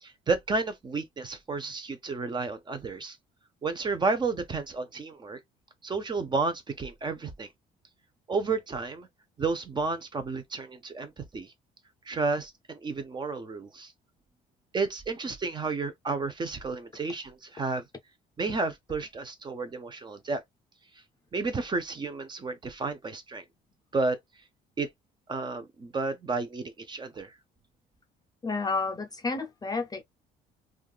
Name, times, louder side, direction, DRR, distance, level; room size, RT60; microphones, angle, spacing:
voice 1, 0.0-3.2 3.6-5.4 5.8-7.5 8.3-9.1 9.4-11.5 12.1-13.9 14.7-17.8 18.4-20.4 21.3-23.4 23.9-24.2 24.8-24.9 25.3-27.3, right 3 dB, 25° right, 0.7 m, -31 dB
voice 2, 28.4-30.0, left 3 dB, 20° left, 0.5 m, -30 dB
3.4 x 2.4 x 2.3 m
cardioid pair, 110°, 17 cm